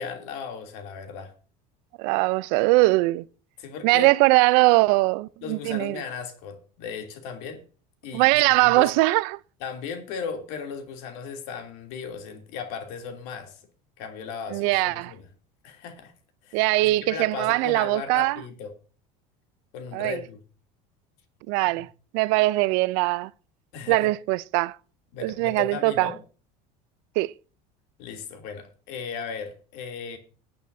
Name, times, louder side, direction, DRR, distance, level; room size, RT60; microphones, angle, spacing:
voice 1, 0.0-1.3 3.6-4.1 5.4-7.6 8.0-8.3 8.6-8.9 9.6-13.6 14.0-15.2 15.6-16.1 16.4-18.7 19.7-20.4 23.7-24.1 25.1-26.2 28.0-30.2, left 6 dB, 70° left, 3.1 m, -36 dB
voice 2, 2.0-3.2 3.8-6.0 8.1-9.4 14.5-15.1 16.5-18.4 19.9-20.2 21.5-21.9 22.1-23.3 23.9-24.8 25.2-26.1 27.2-27.3, right 22 dB, 75° right, 0.6 m, -21 dB
20.0 x 8.7 x 2.7 m
cardioid pair, 140°, 17 cm